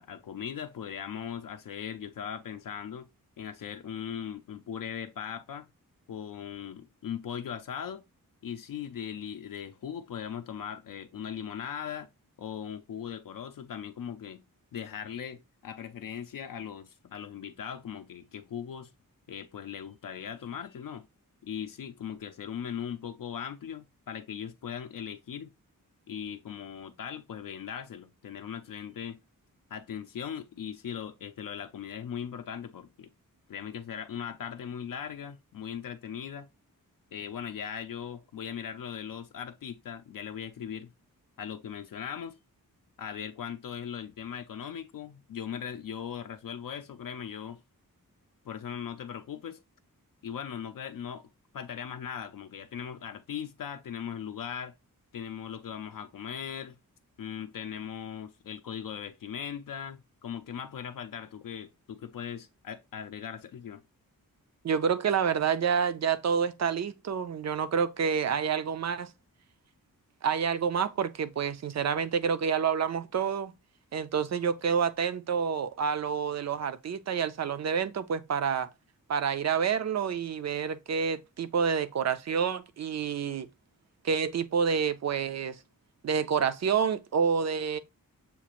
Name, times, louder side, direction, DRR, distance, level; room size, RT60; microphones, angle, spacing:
voice 1, 0.0-3.1 3.4-5.7 6.1-8.0 8.4-12.1 12.4-14.4 14.7-18.9 19.3-21.0 21.4-25.5 26.1-29.2 29.7-33.1 33.5-36.5 37.1-40.9 41.4-42.4 43.0-47.6 48.5-49.6 50.2-54.7 55.1-56.8 57.2-63.8, left 8 dB, 70° left, 0.5 m, -39 dB
voice 2, 64.6-69.1 70.2-73.5 73.9-78.7 79.1-83.5 84.0-85.6 86.0-87.8, right 7 dB, 50° right, 0.5 m, -28 dB
7.0 x 2.4 x 3.0 m
wide cardioid pair, 160°, 35 cm